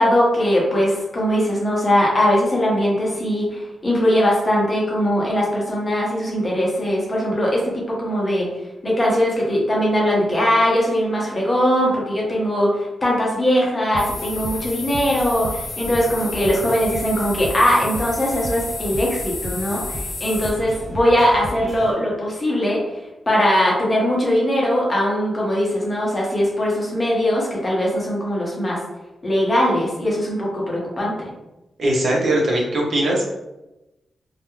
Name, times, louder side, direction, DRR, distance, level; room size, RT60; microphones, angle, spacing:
voice 1, 0.0-8.5 8.8-22.8 23.3-28.8 29.2-31.3, equal, 25° left, -3 dB, 0.7 m, -20 dB
sound 1, 13.9-21.9, equal, 40° right, 1.1 m, -34 dB
sound 2, 14.0-20.5, left 3 dB, 75° left, 0.6 m, -32 dB
voice 2, 31.8-33.2, right 1 dB, 60° right, -2 dB, 0.6 m, -20 dB
2.3 x 2.0 x 2.9 m, 0.98 s
wide cardioid pair, 120°, 0 cm